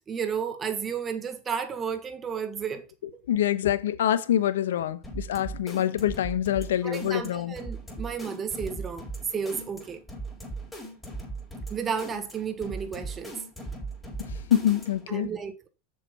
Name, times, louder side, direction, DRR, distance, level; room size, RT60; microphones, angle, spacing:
voice 1, 0.1-2.9 3.1-3.2 6.8-9.1 9.3-10.0 11.7-13.4 15.1-15.7, right 6 dB, 25° right, 1.5 m, -32 dB
voice 2, 3.3-7.5 14.5-15.3, left 11 dB, 80° left, 1.1 m, -25 dB
sound 1, 5.0-15.1, right 2 dB, 10° left, 4.5 m, -39 dB
7.3 x 6.7 x 5.4 m
hypercardioid pair, 110°, 0 cm